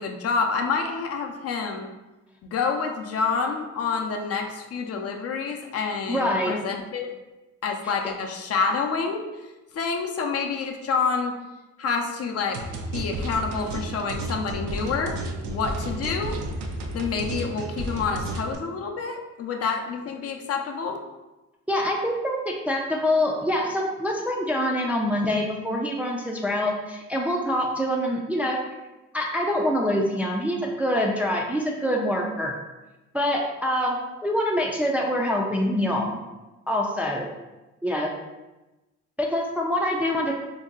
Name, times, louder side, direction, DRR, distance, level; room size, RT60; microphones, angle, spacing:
voice 1, 0.0-1.9 2.5-7.1 7.6-9.3 9.7-11.3 11.8-15.2 15.5-16.4 16.9-21.0, left 5 dB, 50° left, 3 dB, 0.5 m, -28 dB
voice 2, 6.1-6.6 7.8-7.9 21.7-28.6 29.1-32.5 33.1-36.2 36.7-37.3 37.8-38.1 39.2-40.3, left 1 dB, 5° right, -1 dB, 0.3 m, -25 dB
sound 1, 12.5-18.5, right 1 dB, 85° right, 0.5 m, -32 dB
2.6 x 2.2 x 3.7 m, 1.1 s
cardioid pair, 90°, 30 cm